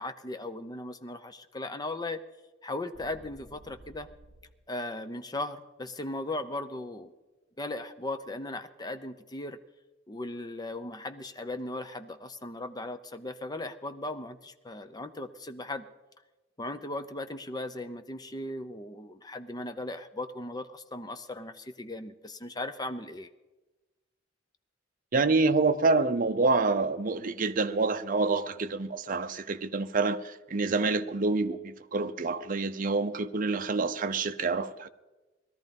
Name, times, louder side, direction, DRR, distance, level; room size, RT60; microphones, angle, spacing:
voice 1, 0.0-2.2 2.6-4.1 4.7-7.1 7.6-9.6 10.1-15.9 16.6-23.3, left 2 dB, 20° left, 9 dB, 0.8 m, -37 dB
sound 1, 2.9-4.6, right 1 dB, 65° left, 2.2 m, -53 dB
voice 2, 25.1-34.9, right 3 dB, 45° right, 8 dB, 0.7 m, -27 dB
18.5 x 13.5 x 5.3 m, 1.1 s
head